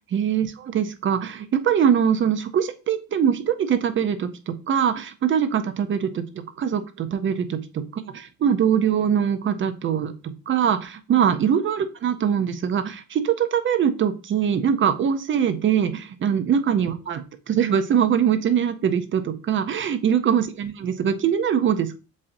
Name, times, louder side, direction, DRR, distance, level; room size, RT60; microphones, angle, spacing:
voice 1, 0.1-6.2 6.6-22.0, right 8 dB, 35° right, 9 dB, 0.5 m, -22 dB
7.3 x 2.6 x 2.6 m, 0.32 s
cardioid pair, 130°, 36 cm